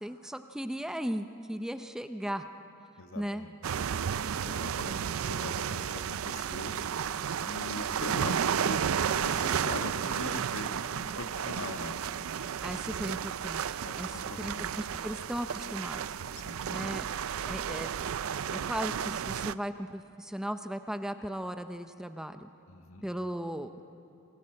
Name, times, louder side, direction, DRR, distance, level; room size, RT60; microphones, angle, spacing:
voice 1, 0.0-2.5 3.2-3.5 12.6-16.1 16.7-17.1 17.5-17.9 18.6-22.5 23.0-23.9, equal, 5° right, 8 dB, 0.6 m, -37 dB
voice 2, 3.0-3.6 4.4-6.7 7.5-8.8 9.1-12.0 13.7-14.7 16.4-16.7 22.7-23.0, left 2 dB, 70° left, 6 dB, 1.6 m, -42 dB
sound 1, 3.6-19.5, right 8 dB, 75° right, 0.4 m, -33 dB
27.5 x 19.5 x 7.7 m, 2.7 s
head